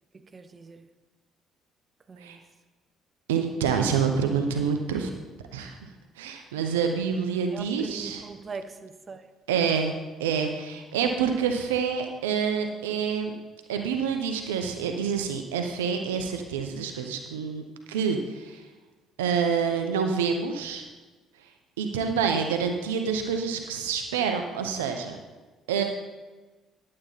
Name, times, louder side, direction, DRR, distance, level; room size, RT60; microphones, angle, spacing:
voice 1, 0.1-0.9 2.1-2.4 7.5-9.3, right 4 dB, 35° right, 9 dB, 1.0 m, -41 dB
voice 2, 3.3-5.1 5.5-5.8 6.2-8.2 9.5-13.3 13.7-18.6 19.2-20.8 21.8-25.2 25.7-25.8, right 6 dB, 80° right, 5 dB, 0.8 m, -27 dB
11.5 x 8.6 x 4.1 m, 1.3 s
hypercardioid pair, 50°, 0 cm